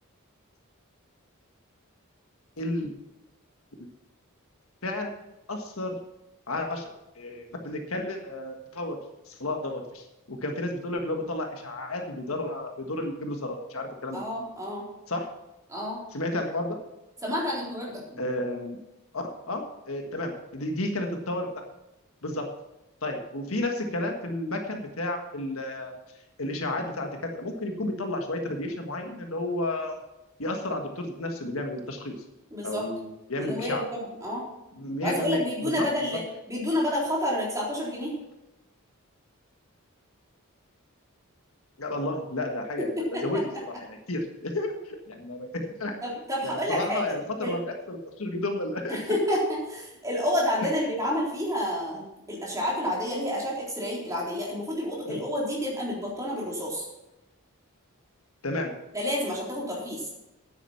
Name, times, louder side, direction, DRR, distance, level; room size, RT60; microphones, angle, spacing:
voice 1, 2.6-2.9 3.8-3.9 4.8-5.1 5.5-5.9 6.5-9.0 9.3-14.2 15.1-15.3 16.1-16.8 18.2-18.8 19.1-21.5 22.2-22.5 23.0-26.0 26.4-30.0 30.4-32.1 32.6-33.8 34.7-35.9 41.8-43.5 43.8-45.9 46.4-49.2 55.1-55.2 58.4-58.7, left 1 dB, 75° left, 3 dB, 1.6 m, -32 dB
voice 2, 14.1-14.9 15.7-16.0 17.2-18.2 32.5-32.8 33.4-34.4 35.0-36.2 36.5-38.1 43.1-43.2 46.0-47.0 47.4-47.5 48.9-56.8 58.9-60.0, equal, 15° right, -5 dB, 3.8 m, -29 dB
9.6 x 9.1 x 5.8 m, 0.93 s
head